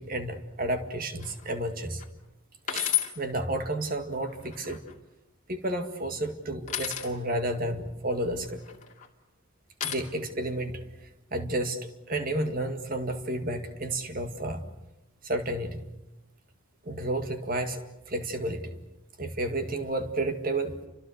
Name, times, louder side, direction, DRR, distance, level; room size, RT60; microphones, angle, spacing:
voice 1, 0.0-2.0 2.7-4.8 5.5-8.6 9.8-10.8 11.3-14.6 15.2-15.8 16.9-17.8 18.1-18.7 19.2-20.8, right 1 dB, 45° right, 7 dB, 2.1 m, -31 dB
Droping a key, 1.2-1.5 2.0-2.1 2.7-3.1 4.3-4.9 6.7-7.1 8.6-9.1 9.8-9.9, left 12 dB, 35° left, 2.5 m, -31 dB
29.5 x 25.5 x 6.6 m, 0.97 s
head